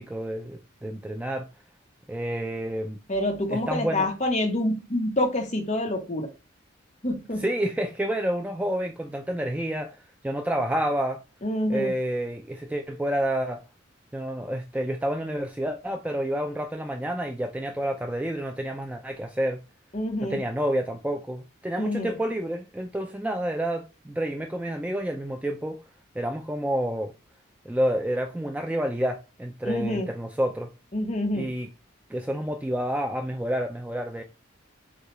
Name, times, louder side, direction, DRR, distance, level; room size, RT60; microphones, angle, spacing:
voice 1, 0.0-1.5 2.1-3.0 3.5-4.1 7.4-10.0 10.2-11.2 11.7-13.6 14.1-19.6 20.3-25.8 26.2-27.1 27.7-30.7 31.3-31.7 32.1-34.2, right 1 dB, 5° right, 0.3 m, -29 dB
voice 2, 3.1-6.3 7.0-7.4 11.4-11.9 19.9-20.4 21.8-22.1 29.6-30.1 30.9-31.5, left 1 dB, 35° left, 1.0 m, -27 dB
6.4 x 2.3 x 2.9 m
head